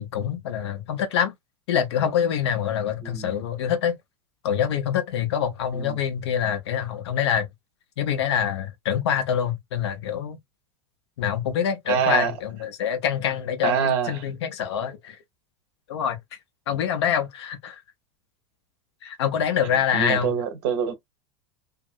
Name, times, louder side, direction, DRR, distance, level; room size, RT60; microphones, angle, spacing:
voice 1, 0.0-1.3 1.7-4.0 4.4-7.5 8.0-10.4 11.2-15.2 15.9-16.2 16.7-17.8 19.0-20.3, left 8 dB, 70° left, 0.9 m, -25 dB
voice 2, 3.0-3.3 5.7-6.0 11.9-12.3 13.6-14.2 19.9-20.9, right 7 dB, 65° right, 1.0 m, -25 dB
2.7 x 2.7 x 2.5 m
hypercardioid pair, 90°, 14 cm